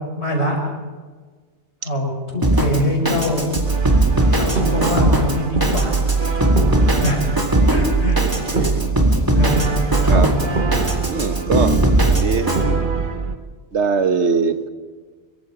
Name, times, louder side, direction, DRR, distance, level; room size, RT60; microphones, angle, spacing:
voice 1, 0.2-0.6 1.8-3.6 4.3-5.9 7.0-7.3 7.7-8.2 9.3-9.8 10.0-10.3, equal, 75° left, 1 dB, 5.3 m, -22 dB
Drum kit, 2.4-12.6, right 1 dB, 20° right, 2.2 m, -20 dB
Brass instrument, 3.6-13.4, right 4 dB, 50° right, 1.5 m, -22 dB
voice 2, 11.1-11.7 12.1-12.8 13.7-14.7, right 5 dB, 85° right, 10 dB, 1.5 m, -21 dB
25.0 x 22.0 x 5.0 m, 1.4 s
omnidirectional pair, 1.1 m